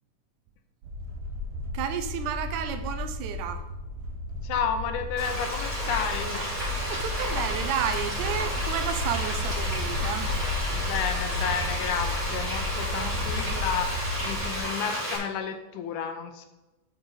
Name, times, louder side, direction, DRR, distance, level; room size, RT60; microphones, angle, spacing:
sound 1, 0.8-14.6, left 2 dB, 60° right, 1.8 m, -33 dB
voice 1, 1.7-3.7 6.8-10.3 12.9-13.6 14.3-14.5, right 8 dB, 80° right, 9 dB, 2.0 m, -32 dB
voice 2, 4.4-6.5 10.7-16.5, left 7 dB, 75° left, 6 dB, 2.1 m, -31 dB
Frying (food), 5.2-15.2, equal, 20° right, 3.0 m, -32 dB
7.9 x 7.1 x 4.0 m, 1.1 s
omnidirectional pair, 3.6 m